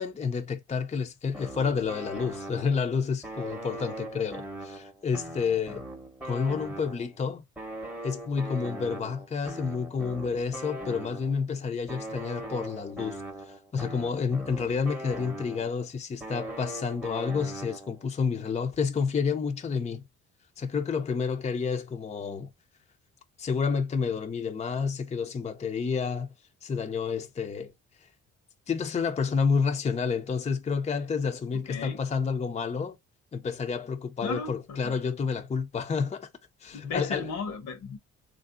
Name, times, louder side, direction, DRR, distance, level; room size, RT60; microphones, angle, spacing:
voice 1, 0.0-5.8 6.2-7.4 8.0-20.0 20.6-22.5 23.4-26.3 26.6-27.7 28.7-33.0 33.3-36.3 36.6-37.3, left 5 dB, 20° left, 0.5 m, -29 dB
sound 1, 1.3-2.9 3.2-7.2 7.6-11.4 11.9-15.8 16.2-18.0, right 1 dB, 5° right, 0.8 m, -40 dB
voice 2, 31.7-32.0 34.2-34.9 36.7-38.0, left 4 dB, 70° left, 0.9 m, -35 dB
3.3 x 2.4 x 2.5 m
cardioid pair, 90°, 30 cm